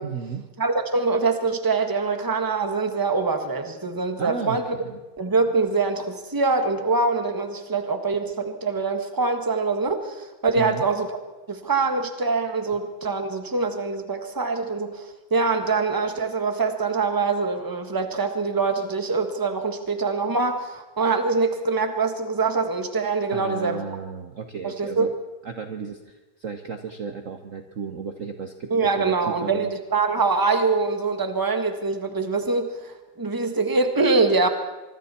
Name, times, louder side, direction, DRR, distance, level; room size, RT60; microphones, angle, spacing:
voice 1, 0.0-0.5 4.2-5.0 10.5-10.9 23.3-25.1 25.4-29.7, right 6 dB, 45° right, 6 dB, 1.2 m, -34 dB
voice 2, 0.6-4.8 5.2-11.1 11.5-23.8 24.6-25.1 28.7-34.5, right 4 dB, 10° right, 6 dB, 1.4 m, -24 dB
24.5 x 24.5 x 4.4 m, 1.1 s
omnidirectional pair, 2.3 m